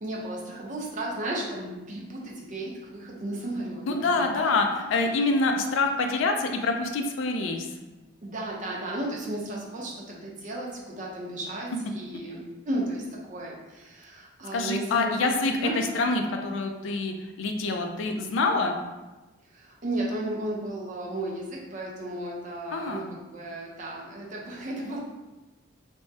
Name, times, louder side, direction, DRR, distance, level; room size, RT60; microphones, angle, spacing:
voice 1, 0.0-4.5 8.2-13.0 13.3-15.7 19.5-25.0, right 1 dB, 40° right, -3 dB, 0.5 m, -34 dB
voice 2, 3.9-7.7 14.5-18.8 22.7-23.2, left 3 dB, 65° left, 4 dB, 0.3 m, -26 dB
3.4 x 2.0 x 2.6 m, 1.1 s
head